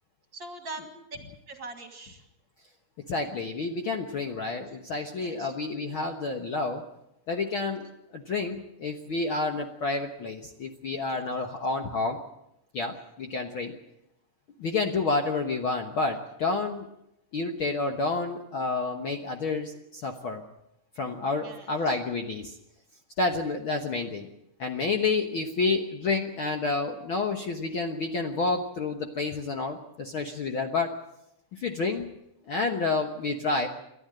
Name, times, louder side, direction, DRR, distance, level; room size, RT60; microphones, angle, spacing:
voice 1, 0.3-0.8 1.5-2.3 5.2-5.5 11.1-11.2 21.4-22.0, right 3 dB, 40° right, 5 dB, 2.4 m, -42 dB
voice 2, 3.1-6.8 7.3-7.8 8.1-12.2 12.7-13.7 14.6-16.9 17.3-20.4 21.0-22.5 23.2-24.3 24.6-30.9 31.5-32.1 32.5-33.7, left 3 dB, 55° left, 4 dB, 1.6 m, -29 dB
29.0 x 12.0 x 7.7 m, 0.83 s
omnidirectional pair, 3.6 m